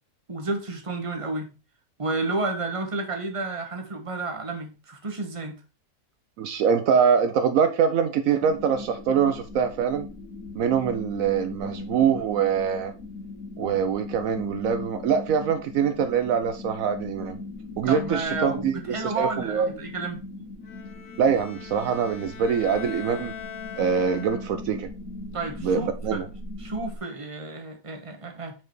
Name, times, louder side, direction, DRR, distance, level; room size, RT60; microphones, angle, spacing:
voice 1, 0.3-1.5 2.0-5.6 17.9-20.2 25.3-26.2 26.6-28.5, right 3 dB, 25° right, 1.2 m, -31 dB
voice 2, 6.4-10.1 10.5-12.9 13.6-17.4 17.8-18.8 19.0-19.7 21.2-23.3 23.8-24.9 25.6-26.3, right 7 dB, 70° right, 1.0 m, -24 dB
sound 1, 8.4-27.0, left 2 dB, 65° left, 1.8 m, -39 dB
Bowed string instrument, 20.6-24.8, left 8 dB, 50° left, 1.0 m, -40 dB
5.4 x 4.9 x 4.5 m
omnidirectional pair, 1.5 m